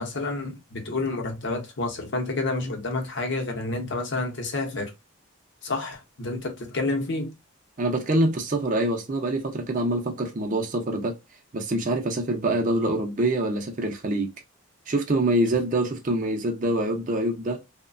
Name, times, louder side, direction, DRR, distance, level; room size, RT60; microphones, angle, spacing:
voice 1, 0.0-4.9 5.6-7.3, left 2 dB, 55° left, 0.7 m, -29 dB
voice 2, 7.8-11.1 11.5-14.3 14.9-17.6, right 1 dB, 35° right, 0.5 m, -25 dB
3.0 x 2.1 x 2.4 m
head